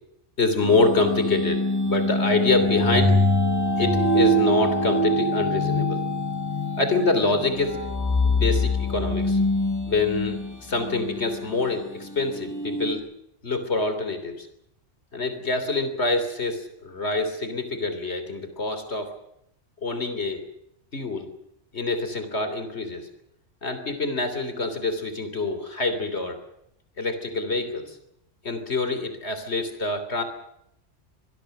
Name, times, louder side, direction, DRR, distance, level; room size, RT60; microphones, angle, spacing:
voice 1, 0.4-3.2 3.8-6.0 6.8-7.8 8.2-9.4 9.9-13.0 13.4-14.5 15.1-19.1 19.8-20.4 20.9-21.3 21.7-23.1 23.6-26.4 27.0-28.0 28.4-30.2, left 3 dB, 60° left, 9 dB, 3.5 m, -26 dB
sound 1, 0.6-12.9, left 1 dB, 15° left, 4.8 m, -24 dB
25.0 x 21.0 x 6.7 m, 0.78 s
omnidirectional pair, 1.3 m